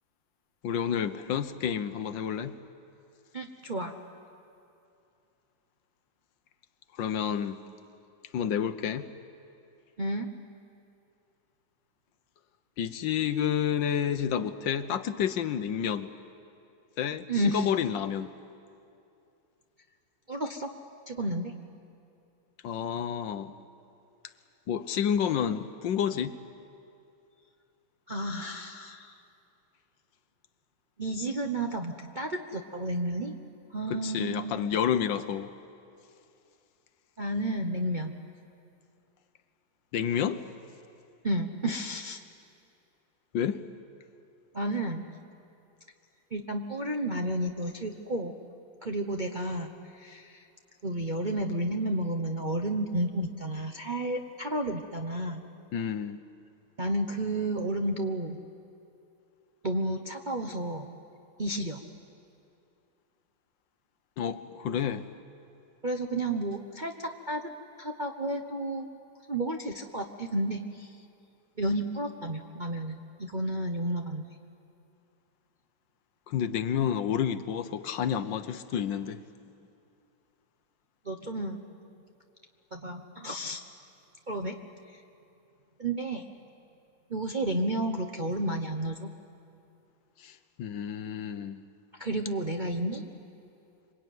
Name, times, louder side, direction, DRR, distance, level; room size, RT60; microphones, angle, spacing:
voice 1, 0.6-2.6 6.9-7.6 8.3-9.1 12.8-16.1 17.0-18.3 22.6-23.5 24.7-26.4 33.9-35.5 39.9-40.4 43.3-43.6 55.7-56.2 64.2-65.1 76.3-79.2 90.2-91.6, left 8 dB, 70° left, 1.4 m, -30 dB
voice 2, 3.3-3.9 10.0-10.3 17.3-17.7 20.3-20.7 21.1-21.5 28.1-29.2 31.0-33.3 33.7-34.7 37.2-38.1 41.2-42.2 44.5-45.0 46.3-48.5 48.8-50.5 50.8-55.4 56.8-58.4 59.6-60.9 61.4-61.8 65.8-67.4 67.8-68.9 69.3-70.9 71.6-74.3 81.0-81.9 82.7-83.6 84.3-84.6 84.9-85.0 85.8-86.2 87.1-89.1 92.0-93.0, right 1 dB, 35° right, 0.7 m, -31 dB
26.5 x 23.5 x 9.4 m
omnidirectional pair, 2.3 m